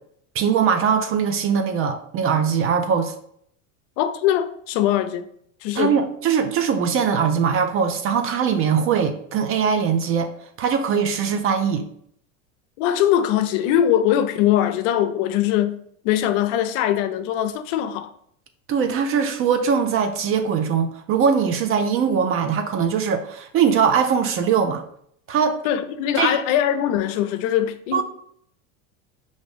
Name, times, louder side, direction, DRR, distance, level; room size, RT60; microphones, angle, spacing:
voice 1, 0.3-3.1 5.7-10.3 10.6-11.9 18.7-24.8 25.3-25.6 26.2-26.4 27.9-28.0, right 7 dB, 35° right, 0.4 m, -21 dB
voice 2, 4.0-5.3 5.6-5.9 12.8-15.8 16.0-18.1 25.6-28.0, left 11 dB, 65° left, 0.5 m, -21 dB
4.8 x 2.6 x 3.3 m
supercardioid pair, 110°, 42 cm